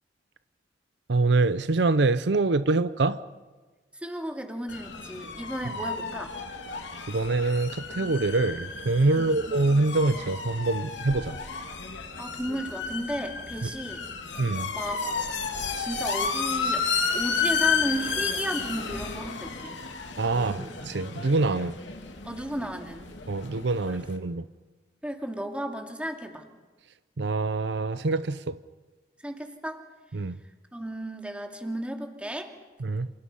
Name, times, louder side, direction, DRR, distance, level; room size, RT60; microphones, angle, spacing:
voice 1, 1.1-3.2 7.1-11.4 13.6-13.7 14.4-14.7 20.2-21.8 23.3-24.5 27.2-28.6 30.1-30.4 32.8-33.1, right 3 dB, 70° right, 14 dB, 0.7 m, -25 dB
voice 2, 4.0-6.3 9.2-9.4 12.2-14.1 14.7-15.0 15.7-16.9 17.1-19.8 20.3-20.7 22.2-23.1 23.9-24.0 25.0-26.4 29.2-29.8 30.7-32.5, right 1 dB, 5° right, 4 dB, 2.4 m, -34 dB
sound 1, 4.7-24.2, left 5 dB, 90° left, 2.9 m, -32 dB
28.0 x 27.5 x 5.6 m, 1.3 s
head